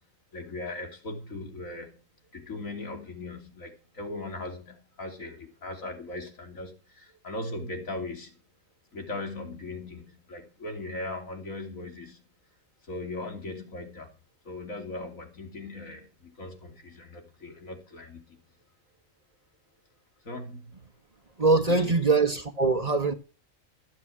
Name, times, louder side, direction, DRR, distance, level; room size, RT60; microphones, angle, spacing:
voice 1, 0.3-2.1 2.3-8.4 8.9-12.2 12.8-14.1 14.5-18.4 20.2-20.8 21.7-22.0, left 2 dB, 85° left, 3.5 m, -39 dB
voice 2, 21.4-23.1, right 3 dB, 30° right, 1.3 m, -23 dB
14.5 x 7.7 x 7.4 m
omnidirectional pair, 1.4 m